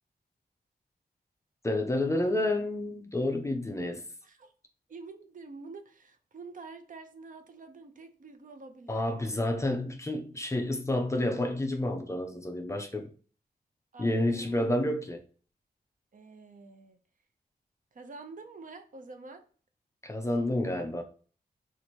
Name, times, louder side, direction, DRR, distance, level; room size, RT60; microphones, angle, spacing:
voice 1, 1.6-4.0 8.9-13.1 14.0-15.2 20.0-21.0, left 1 dB, 15° left, 0.5 m, -29 dB
voice 2, 4.9-9.0 13.9-14.6 16.1-17.0 17.9-19.4, right 3 dB, 55° right, 0.5 m, -47 dB
2.8 x 2.5 x 4.3 m
wide cardioid pair, 160°, 16 cm